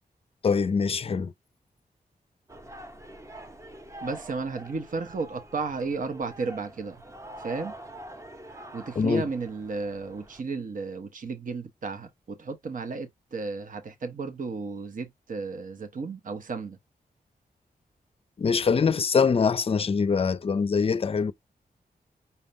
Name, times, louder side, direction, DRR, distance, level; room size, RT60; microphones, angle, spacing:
voice 1, 0.4-1.3 9.0-9.2 18.4-21.3, left 5 dB, 40° left, 0.5 m, -23 dB
sound 1, 2.5-10.4, right 1 dB, 20° right, 0.7 m, -45 dB
voice 2, 4.0-7.0 7.4-7.7 8.7-16.8, right 4 dB, 55° right, 0.9 m, -33 dB
5.7 x 3.6 x 2.6 m
wide cardioid pair, 135°, 16 cm